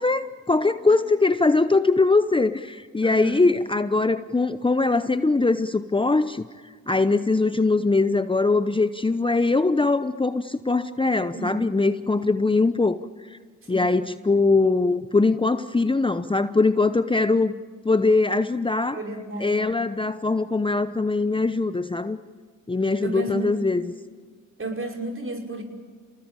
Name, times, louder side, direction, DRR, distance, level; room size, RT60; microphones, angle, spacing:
voice 1, 0.0-6.5 6.9-13.4 13.7-17.5 17.8-19.0 19.4-22.2 22.7-23.9, left 3 dB, 15° left, 11 dB, 0.8 m, -22 dB
voice 2, 3.0-3.5 11.3-11.5 13.6-13.9 18.9-19.9 23.0-23.7 24.6-25.6, right 2 dB, 40° right, 2 dB, 5.8 m, -32 dB
29.0 x 19.5 x 9.1 m, 1.5 s
cardioid pair, 65°, 32 cm